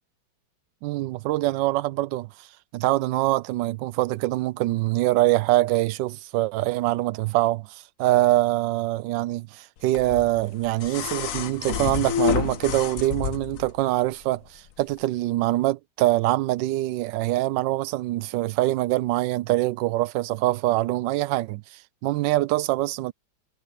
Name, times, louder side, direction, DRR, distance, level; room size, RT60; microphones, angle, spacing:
voice 1, 0.8-2.5 2.7-23.1, right 17 dB, 75° right, 1.2 m, -24 dB
schuiven tafel, 9.9-13.7 15.0-15.1, left 9 dB, 60° left, 0.9 m, -29 dB
omnidirectional pair, 2.1 m